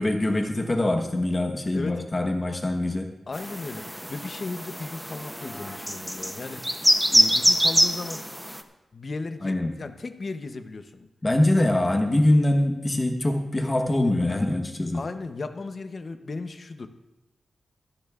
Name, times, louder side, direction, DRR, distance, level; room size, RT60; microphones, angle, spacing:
voice 1, 0.0-3.1 9.4-9.7 11.2-15.0, left 1 dB, 25° left, 3 dB, 1.1 m, -23 dB
voice 2, 1.7-2.0 3.3-6.8 7.1-8.3 8.9-11.1 14.9-16.9, left 3 dB, 45° left, 9 dB, 0.7 m, -36 dB
sound 1, 3.3-8.6, equal, 5° right, 0.7 m, -24 dB
24.0 x 10.0 x 2.4 m, 1.0 s
wide cardioid pair, 140°, 0 cm